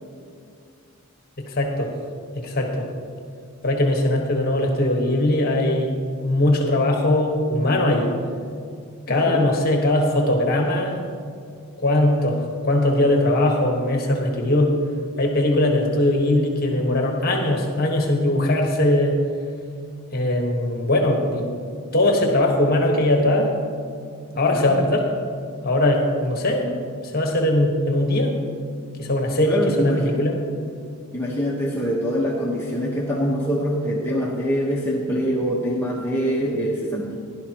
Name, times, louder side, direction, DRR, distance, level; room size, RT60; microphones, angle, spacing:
voice 1, 1.4-1.9 2.3-2.9 3.6-5.9 6.2-8.1 9.1-11.1 11.8-14.7 15.2-19.2 20.1-21.5 21.9-23.5 24.4-25.1 25.6-26.7 27.1-28.3 29.0-30.4, left 1 dB, 45° left, 1 dB, 1.4 m, -20 dB
voice 2, 9.1-9.4 24.5-24.8 29.4-30.2 31.1-37.2, equal, 10° left, -5 dB, 1.1 m, -24 dB
16.5 x 11.5 x 3.0 m, 2.3 s
head